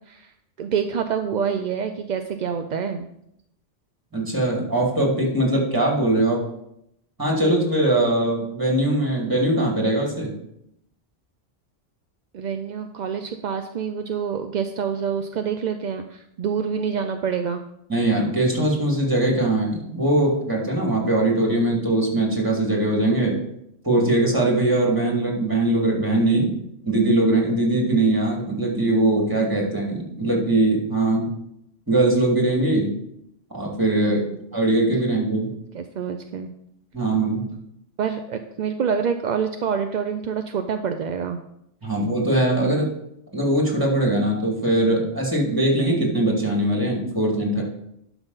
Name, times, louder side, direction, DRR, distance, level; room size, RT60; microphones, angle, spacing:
voice 1, 0.6-3.1 12.3-17.6 33.9-34.4 35.7-36.5 38.0-41.4, right 7 dB, 55° right, 6 dB, 0.5 m, -27 dB
voice 2, 4.1-6.4 7.2-10.3 17.9-23.4 23.8-26.5 26.8-31.3 31.9-32.9 33.5-34.2 34.5-35.5 36.9-37.4 41.8-42.9 43.3-47.6, right 1 dB, 15° right, -1 dB, 2.4 m, -21 dB
11.5 x 5.9 x 4.0 m, 0.77 s
omnidirectional pair, 1.3 m